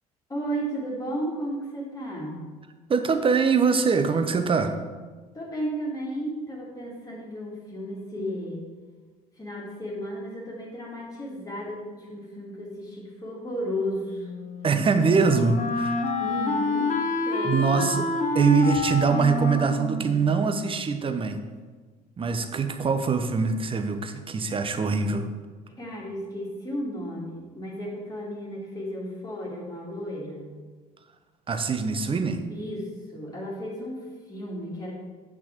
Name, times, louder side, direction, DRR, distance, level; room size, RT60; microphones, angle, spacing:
voice 1, 0.3-2.4 5.3-8.7 9.4-14.3 16.2-17.0 17.2-18.1 25.8-30.6 32.5-34.9, equal, 20° left, -3 dB, 2.2 m, -34 dB
voice 2, 2.9-4.7 8.2-8.3 14.6-16.0 17.4-18.1 18.3-21.4 22.2-25.3 31.5-32.4, right 5 dB, 25° right, 7 dB, 0.9 m, -23 dB
Wind instrument woodwind instrument, 14.2-21.1, left 3 dB, 40° left, 1.0 m, -28 dB
8.5 x 6.0 x 4.5 m, 1.4 s
figure-of-eight pair, 60°, 20 cm